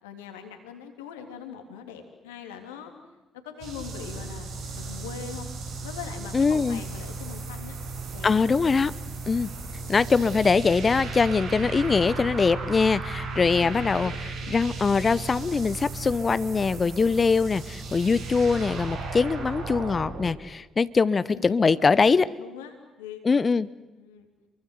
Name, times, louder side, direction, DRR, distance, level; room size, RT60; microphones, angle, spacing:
voice 1, 0.0-2.9 3.3-4.5 4.7-5.5 5.8-7.8 8.1-8.5 8.9-9.0 13.2-14.6 21.3-23.2 24.0-24.3, left 8 dB, 80° left, 5 dB, 3.3 m, -42 dB
sound 1, 3.6-20.3, right 3 dB, 70° right, 5.8 m, -35 dB
voice 2, 6.3-6.8 8.2-8.9 9.3-9.5 9.9-14.1 14.5-22.3 23.2-23.7, left 4 dB, 40° left, 17 dB, 0.9 m, -22 dB
28.5 x 23.5 x 8.3 m, 1.0 s
hypercardioid pair, 45°, 0 cm